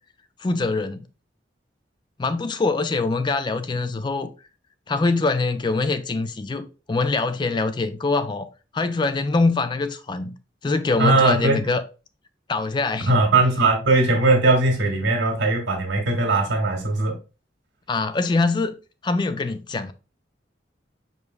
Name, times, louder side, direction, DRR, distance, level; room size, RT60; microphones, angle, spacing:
voice 1, 0.4-1.0 2.2-4.3 4.9-8.5 8.7-10.3 10.6-11.8 12.5-13.1 17.9-18.7 19.0-19.9, left 3 dB, 25° left, 0.3 m, -23 dB
voice 2, 11.0-11.6 13.0-17.2, right 2 dB, 90° right, 1.7 m, -19 dB
5.2 x 4.5 x 2.2 m
head